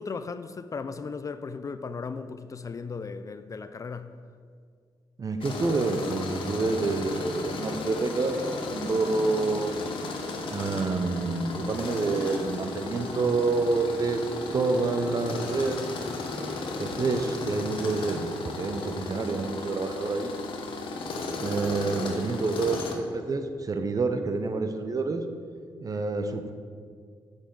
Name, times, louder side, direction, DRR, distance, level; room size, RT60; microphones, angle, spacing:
voice 1, 0.0-4.1, left 4 dB, 40° left, 0.4 m, -36 dB
voice 2, 5.2-9.8 10.5-14.2 14.5-20.3 21.4-25.2 25.8-26.5, right 3 dB, 40° right, 0.7 m, -28 dB
Tools, 5.4-22.9, left 3 dB, 75° left, 0.8 m, -35 dB
8.1 x 5.4 x 3.9 m
supercardioid pair, 60°, 9 cm